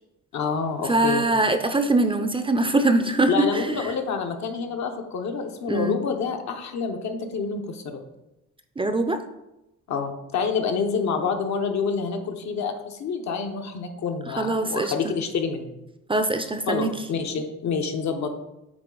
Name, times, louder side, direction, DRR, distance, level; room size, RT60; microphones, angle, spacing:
voice 1, 0.3-1.3 3.3-8.0 9.9-15.8 16.7-18.3, left 5 dB, 65° left, 4 dB, 0.9 m, -27 dB
voice 2, 0.8-3.9 5.7-6.0 8.8-9.2 14.4-14.9 16.1-16.9, right 2 dB, 20° right, 8 dB, 0.5 m, -22 dB
8.9 x 3.3 x 3.8 m, 0.93 s
cardioid pair, 90°, 30 cm